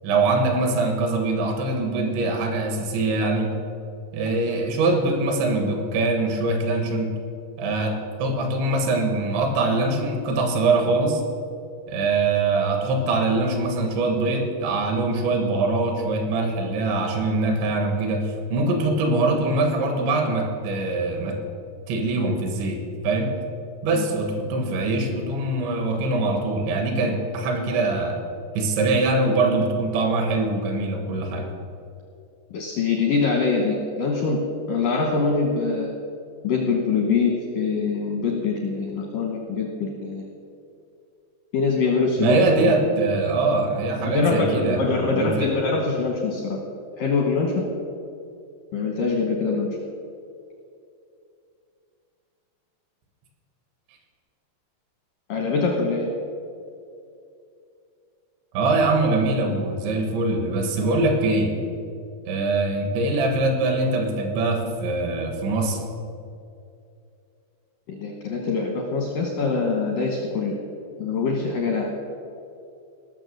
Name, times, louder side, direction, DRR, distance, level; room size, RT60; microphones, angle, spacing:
voice 1, 0.0-3.5 4.1-7.1 7.6-11.2 11.9-21.4 21.9-23.3 23.8-28.2 28.6-31.5 42.2-45.5 58.5-61.5 62.3-65.8, right 2 dB, 75° right, 4 dB, 3.7 m, -23 dB
voice 2, 32.5-34.4 34.7-35.9 36.4-40.3 41.5-42.7 44.1-46.6 47.0-47.6 48.7-49.8 55.3-56.1 67.9-70.6 71.0-72.1, left 4 dB, 80° left, 2 dB, 1.9 m, -24 dB
18.0 x 6.8 x 6.6 m, 2.5 s
omnidirectional pair, 5.5 m